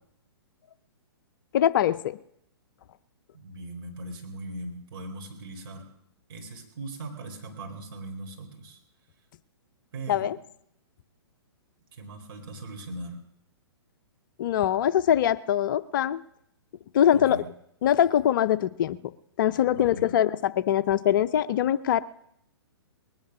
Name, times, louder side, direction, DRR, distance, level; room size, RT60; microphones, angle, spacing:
voice 1, 1.5-2.2 10.1-10.4 14.4-16.2 16.9-17.4 17.8-19.0 19.4-22.0, left 10 dB, 50° left, 14 dB, 0.6 m, -23 dB
voice 2, 3.3-5.9 6.3-8.8 9.9-10.3 11.9-13.2 17.1-17.5 19.7-20.1, right 2 dB, 55° right, 2 dB, 4.1 m, -40 dB
20.0 x 10.5 x 6.1 m, 0.72 s
hypercardioid pair, 125°, 14 cm